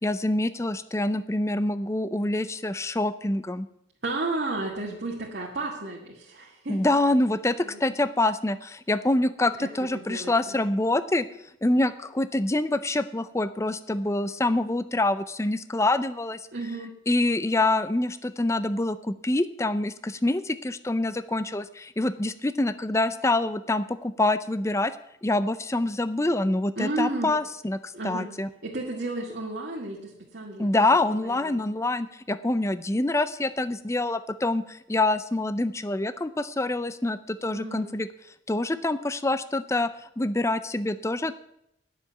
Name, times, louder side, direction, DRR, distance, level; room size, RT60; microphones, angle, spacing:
voice 1, 0.0-3.7 6.7-11.3 11.6-16.4 17.1-24.9 25.2-28.5 30.6-38.1 38.5-39.9 40.2-41.3, left 2 dB, 15° left, 14 dB, 0.5 m, -26 dB
voice 2, 4.0-7.0 7.6-7.8 9.6-10.6 16.5-16.9 26.7-27.3 27.9-28.3 28.6-30.7 31.1-31.6 37.4-38.0, right 2 dB, 55° right, -2 dB, 1.7 m, -33 dB
10.0 x 7.0 x 9.0 m, 0.78 s
head